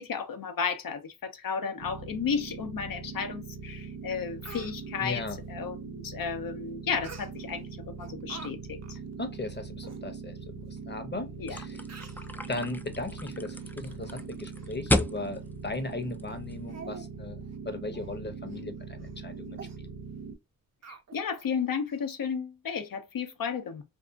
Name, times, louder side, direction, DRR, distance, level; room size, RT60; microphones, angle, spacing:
voice 1, 0.0-5.2 5.5-9.0 11.4-11.6 20.9-23.8, left 6 dB, 70° left, 0.7 m, -33 dB
sound 1, 1.8-20.4, right 5 dB, 90° right, 0.6 m, -42 dB
Speech, 3.7-3.8 4.2-4.7 7.0-7.6 8.0-8.5 8.8-9.0 9.5-9.6 9.8-10.0 10.8-10.9 11.5-11.6 11.9-12.3 12.9-13.1 13.6-14.2 14.5-14.7 15.2-15.3 15.8-15.9 16.3-16.4 16.7-17.1 17.4-17.6 17.9-18.1 18.5-18.6 19.0-19.2 19.6-19.8 20.8-21.5 21.9-22.0, right 5 dB, 45° right, 0.7 m, -47 dB
voice 2, 5.0-5.4 9.2-11.8 12.5-17.4 17.6-19.9, left 2 dB, 30° left, 0.8 m, -37 dB
sound 2, 11.5-16.8, left 1 dB, 5° left, 0.3 m, -33 dB
2.7 x 2.4 x 2.3 m
cardioid pair, 45°, 36 cm